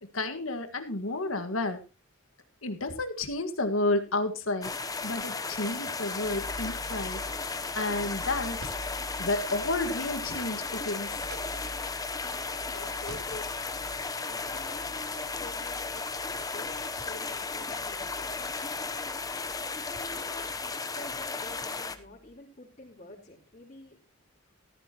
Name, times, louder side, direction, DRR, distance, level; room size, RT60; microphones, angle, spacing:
voice 1, 0.0-1.8 2.6-4.7 5.0-7.2 7.7-8.7 9.2-11.3, left 2 dB, 85° left, 7 dB, 1.8 m, -31 dB
sound 1, 4.6-22.0, left 4 dB, 20° left, 0.9 m, -35 dB
sound 2, 6.2-22.3, equal, 65° left, 1.9 m, -48 dB
sound 3, 6.7-9.4 9.8-12.1 12.4-12.5 12.8-13.9, right 1 dB, 65° right, 3.8 m, -50 dB
voice 2, 12.5-24.1, left 1 dB, 35° left, -4 dB, 3.9 m, -48 dB
14.0 x 14.0 x 3.0 m, 0.30 s
head